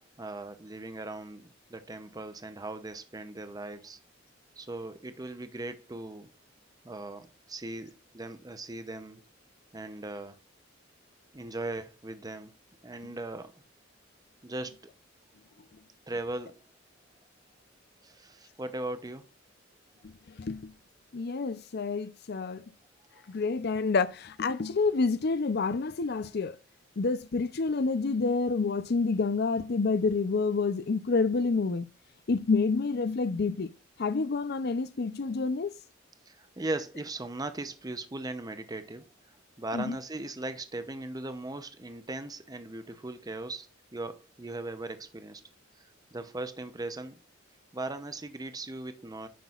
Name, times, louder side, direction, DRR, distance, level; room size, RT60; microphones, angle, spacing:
voice 1, 0.2-4.0 4.6-6.3 6.8-9.2 9.7-10.4 11.3-12.5 12.8-13.5 14.4-14.9 16.1-16.6 18.0-19.3 36.3-39.1 39.6-45.4 46.1-47.2 47.7-49.3, right 2 dB, 20° right, 0.6 m, -38 dB
voice 2, 20.4-20.7 21.1-22.6 23.3-26.6 27.0-31.9 32.3-33.7 34.0-35.7 39.7-40.0, left 4 dB, 55° left, 0.5 m, -28 dB
9.3 x 6.0 x 2.4 m
head